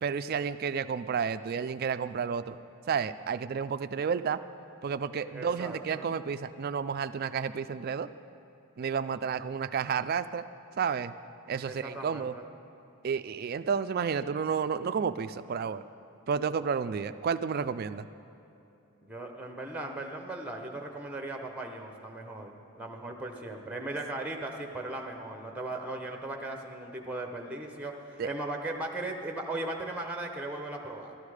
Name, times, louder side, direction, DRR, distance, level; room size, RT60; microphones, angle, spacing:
voice 1, 0.0-2.6 2.9-4.4 4.8-8.1 8.8-10.4 10.8-11.1 11.5-12.3 13.0-15.8 16.3-18.1 28.2-28.3, right 6 dB, 45° right, 13 dB, 0.3 m, -31 dB
voice 2, 5.3-6.1 11.6-12.4 19.0-31.2, right 2 dB, 5° right, 3 dB, 0.8 m, -38 dB
12.0 x 12.0 x 4.9 m, 2.9 s
head